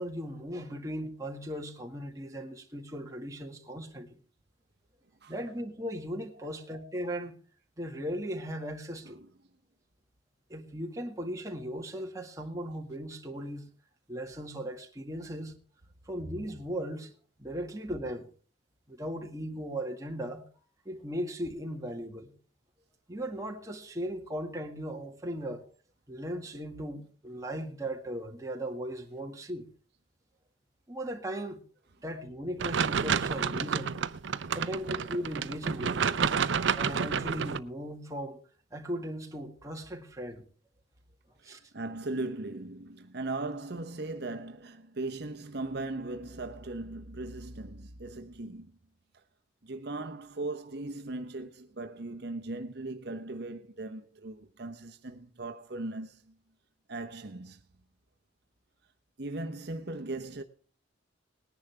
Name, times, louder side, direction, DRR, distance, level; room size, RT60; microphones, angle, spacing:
voice 1, 0.0-4.2 5.3-7.3 7.8-9.2 10.5-13.7 14.1-15.5 16.1-17.1 17.4-18.3 18.9-20.4 20.9-22.3 23.1-25.7 26.1-29.6 30.9-31.6 32.0-34.0 34.5-36.1 36.7-38.4 38.7-40.4 41.4-41.6, equal, 20° right, 1.9 m, -37 dB
sound 1, 32.6-37.6, right 6 dB, 80° right, 0.6 m, -30 dB
voice 2, 41.4-48.7 49.1-49.2 49.6-56.4 56.9-57.6 59.2-60.4, right 2 dB, 60° right, 1.0 m, -38 dB
19.5 x 10.5 x 3.4 m
head